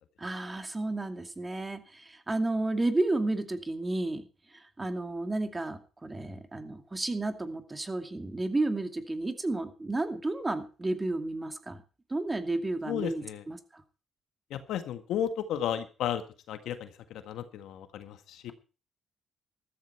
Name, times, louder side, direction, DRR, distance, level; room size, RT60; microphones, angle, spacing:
voice 1, 0.2-4.2 4.5-11.8 12.1-13.8, right 2 dB, 20° right, 7 dB, 2.5 m, -32 dB
voice 2, 12.9-13.4 14.5-16.2 16.5-18.5, left 9 dB, 85° left, 9 dB, 1.7 m, -34 dB
14.0 x 13.5 x 4.6 m, 0.35 s
cardioid pair, 90°, 0 cm